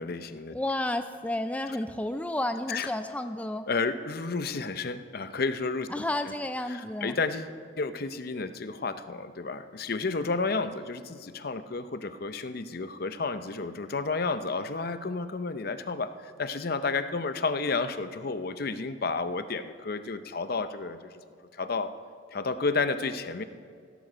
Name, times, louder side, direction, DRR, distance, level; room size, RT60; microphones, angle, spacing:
voice 1, 0.0-0.6 2.7-2.9 3.7-5.9 6.7-21.1 21.5-21.9 22.3-23.4, left 4 dB, 50° left, 11 dB, 0.7 m, -31 dB
voice 2, 0.5-3.7 5.9-7.2, left 1 dB, 5° left, 8 dB, 0.4 m, -31 dB
15.5 x 13.0 x 5.0 m, 2.2 s
head